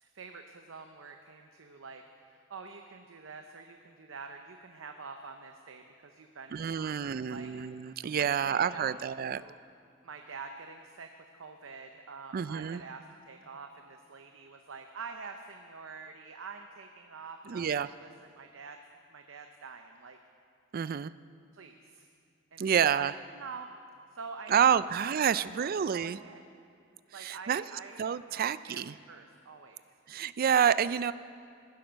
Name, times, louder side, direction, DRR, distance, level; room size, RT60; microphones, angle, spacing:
voice 1, 0.0-7.5 7.8-9.6 10.0-18.8 19.1-20.2 21.5-22.1 22.5-23.7 24.1-26.4 27.1-29.8, right 4 dB, 75° right, 5 dB, 0.7 m, -47 dB
voice 2, 6.5-9.4 12.3-12.8 17.5-17.9 20.7-21.1 22.6-23.1 24.5-26.2 27.2-27.6 28.0-28.9 30.1-31.1, right 8 dB, 45° right, 16 dB, 0.4 m, -28 dB
15.0 x 10.5 x 6.3 m, 2.3 s
head